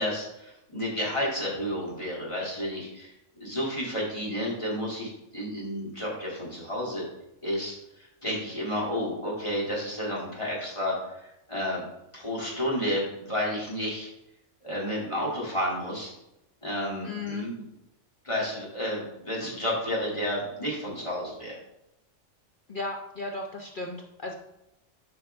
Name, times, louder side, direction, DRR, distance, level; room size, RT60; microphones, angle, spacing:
voice 1, 0.0-3.1 3.4-7.0 7.4-11.0 11.5-11.8 12.1-14.1 14.6-16.1 16.6-17.6 18.2-21.6, equal, 25° left, -5 dB, 2.5 m, -31 dB
voice 2, 17.0-17.5 22.7-24.3, left 3 dB, 50° left, 1 dB, 0.8 m, -35 dB
8.9 x 5.4 x 3.4 m, 0.85 s
omnidirectional pair, 1.3 m